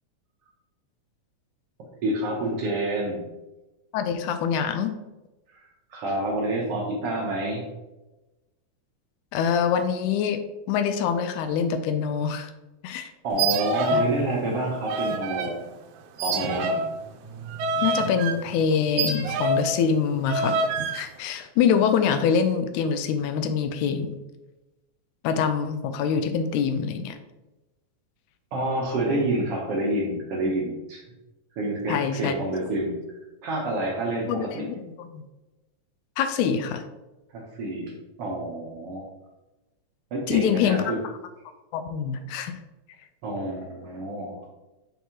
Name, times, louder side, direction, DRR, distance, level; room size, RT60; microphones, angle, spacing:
voice 1, 2.0-3.3 5.5-5.6 5.9-7.6 13.2-15.6 16.2-16.9 28.5-31.0 31.6-33.0 33.4-34.7 37.3-39.0 40.1-41.0 43.2-44.4, right 1 dB, 65° right, -2 dB, 1.6 m, -28 dB
voice 2, 3.9-4.9 9.3-10.4 10.7-12.5 12.8-13.1 13.9-14.0 17.8-20.6 20.9-24.2 25.2-27.2 31.9-32.3 34.3-35.2 36.2-36.9 40.3-40.9 41.7-42.6, left 7 dB, 80° left, 8 dB, 2.0 m, -25 dB
sound 1, 13.3-14.2 14.5-15.5 16.2-19.8 20.3-21.0, right 2 dB, 80° right, 2.0 m, -27 dB
6.0 x 5.5 x 2.9 m, 1.0 s
omnidirectional pair, 3.5 m